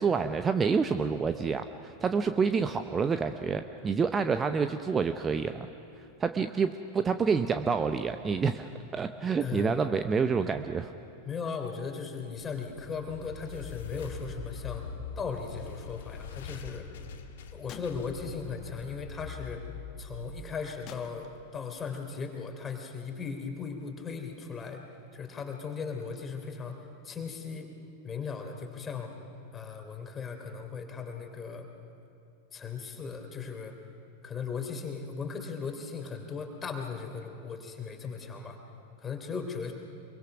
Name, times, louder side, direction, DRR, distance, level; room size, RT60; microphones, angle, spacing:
voice 1, 0.0-5.7 6.2-10.9, right 5 dB, 20° right, 9 dB, 0.7 m, -28 dB
voice 2, 9.4-9.7 11.2-14.9 15.1-16.9 17.5-19.6 20.0-24.8 25.1-27.7 28.0-29.1 29.5-31.7 32.5-33.8 34.2-38.6 39.0-39.7, left 5 dB, 20° left, 3 dB, 3.3 m, -37 dB
sound 1, 12.3-21.5, left 5 dB, 55° left, 1.5 m, -43 dB
sound 2, 17.7-18.7 19.0-19.1 20.9-22.0, left 9 dB, 35° left, 1.3 m, -50 dB
25.5 x 23.0 x 6.0 m, 2.7 s
figure-of-eight pair, 90°, 0 cm